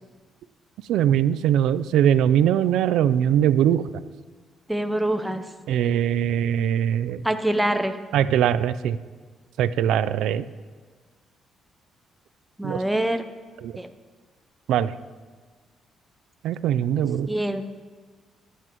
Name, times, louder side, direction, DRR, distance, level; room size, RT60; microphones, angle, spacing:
voice 1, 0.9-3.8 5.7-7.2 8.1-9.0 9.6-10.4 12.6-12.8 13.6-13.7 14.7-14.9 16.4-17.3, right 10 dB, 85° right, 15 dB, 0.4 m, -21 dB
voice 2, 4.7-5.4 7.2-8.0 12.6-13.2 13.8-13.9 17.3-17.6, right 1 dB, 5° right, 7 dB, 0.6 m, -24 dB
21.5 x 8.3 x 3.0 m, 1.5 s
cardioid pair, 90°, 0 cm